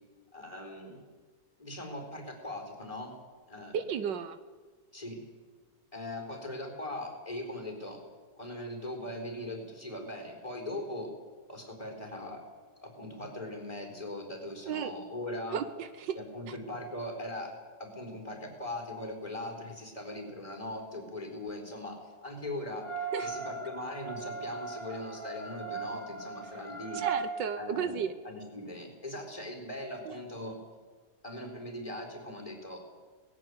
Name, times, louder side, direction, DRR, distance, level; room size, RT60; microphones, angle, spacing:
voice 1, 0.3-1.1 1.6-3.1 3.5-3.8 4.9-5.3 5.9-8.0 8.4-11.1 11.5-12.4 12.8-15.6 16.1-22.9 23.2-27.0 27.6-30.6 31.2-32.8, left 1 dB, 15° left, 3 dB, 4.3 m, -40 dB
voice 2, 3.7-4.4 14.7-14.9 15.5-16.2 16.5-16.6 23.1-23.3 26.9-28.1 30.0-30.2, right 7 dB, 75° right, 12 dB, 1.6 m, -33 dB
sound 1, 22.8-27.3, right 5 dB, 15° right, 2.9 m, -38 dB
19.0 x 17.0 x 9.6 m, 1.4 s
omnidirectional pair, 2.0 m